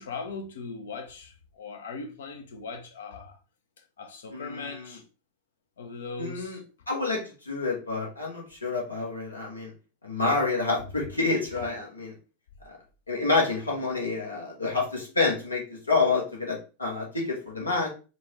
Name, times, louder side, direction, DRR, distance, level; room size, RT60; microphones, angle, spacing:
voice 1, 0.0-3.4 4.0-5.0 5.8-6.6, left 4 dB, 65° left, 0.7 m, -39 dB
voice 2, 4.3-5.0 6.2-6.6 6.9-9.7 10.0-12.1 12.7-12.8 13.1-17.9, left 3 dB, 80° left, 1.3 m, -28 dB
4.5 x 2.4 x 3.1 m
figure-of-eight pair, 90°, 0 cm